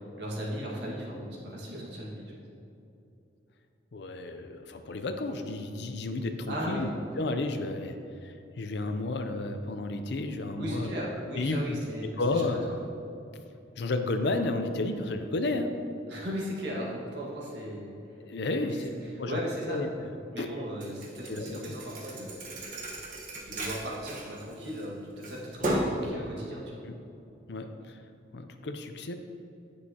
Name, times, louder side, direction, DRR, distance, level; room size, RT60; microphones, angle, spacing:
voice 1, 0.2-2.3 6.5-6.9 10.6-12.5 16.1-18.0 18.6-19.8 20.3-22.4 23.5-26.6, equal, 65° right, -4 dB, 1.7 m, -37 dB
voice 2, 3.9-6.9 7.2-8.0 8.2-10.9 11.4-11.8 12.2-12.6 13.8-15.7 18.2-18.9 19.2-19.4 19.7-19.9 20.4-20.5 21.3-21.7 26.9-27.0 27.5-27.7 28.3-29.1, left 2 dB, 65° left, 7 dB, 0.5 m, -32 dB
Thump thud, 20.8-24.8 25.2-26.0, right 1 dB, 45° right, 1.2 m, -34 dB
9.9 x 6.3 x 2.8 m, 2.8 s
head